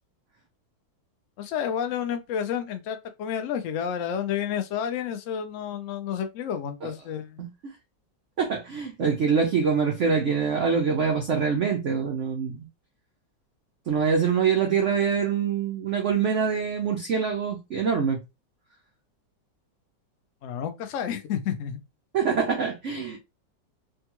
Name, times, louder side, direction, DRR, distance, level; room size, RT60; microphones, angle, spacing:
voice 1, 1.4-7.4 20.4-21.8, left 8 dB, 75° left, 0.7 m, -30 dB
voice 2, 8.4-12.7 13.9-18.2 22.1-23.2, right 6 dB, 75° right, 0.6 m, -24 dB
3.4 x 2.3 x 2.9 m
omnidirectional pair, 2.0 m